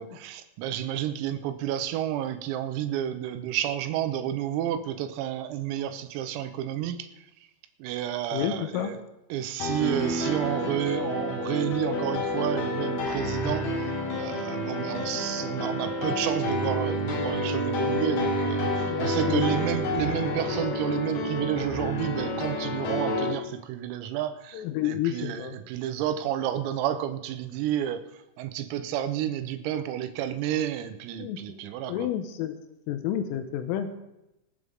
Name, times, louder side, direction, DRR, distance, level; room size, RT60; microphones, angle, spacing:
voice 1, 0.0-7.1 7.8-9.0 9.3-13.9 14.2-28.0 28.4-32.1, right 11 dB, 85° right, 9 dB, 3.7 m, -31 dB
voice 2, 8.3-8.9 18.9-19.5 24.5-25.6 31.2-32.6 32.9-34.0, left 11 dB, 90° left, 8 dB, 3.4 m, -30 dB
sound 1, 9.6-23.3, left 1 dB, 70° left, 1.6 m, -29 dB
24.5 x 8.5 x 3.6 m, 0.90 s
omnidirectional pair, 5.9 m